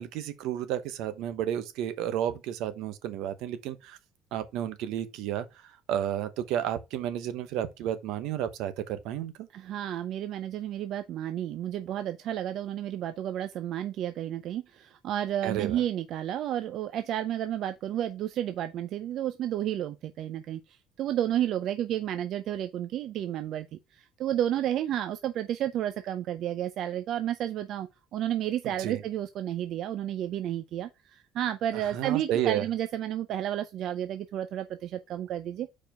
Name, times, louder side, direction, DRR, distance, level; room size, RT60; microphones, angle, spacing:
voice 1, 0.0-4.0 4.3-5.5 5.9-9.5 15.4-15.8 28.8-29.0 31.7-32.7, right 11 dB, 75° right, 1.1 m, -31 dB
voice 2, 9.5-35.7, right 11 dB, 50° right, 0.5 m, -31 dB
4.8 x 4.7 x 5.7 m
cardioid pair, 165°, 0 cm